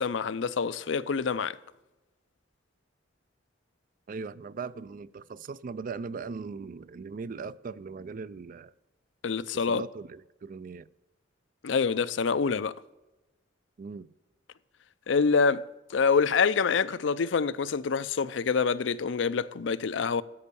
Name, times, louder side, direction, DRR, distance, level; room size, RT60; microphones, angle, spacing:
voice 1, 0.0-1.6 9.2-9.8 11.6-12.7 15.1-15.6 15.9-20.2, left 5 dB, 70° left, 0.5 m, -26 dB
voice 2, 4.1-8.7 9.5-10.9 13.8-14.1, right 4 dB, 45° right, 0.4 m, -39 dB
13.5 x 5.5 x 6.9 m
head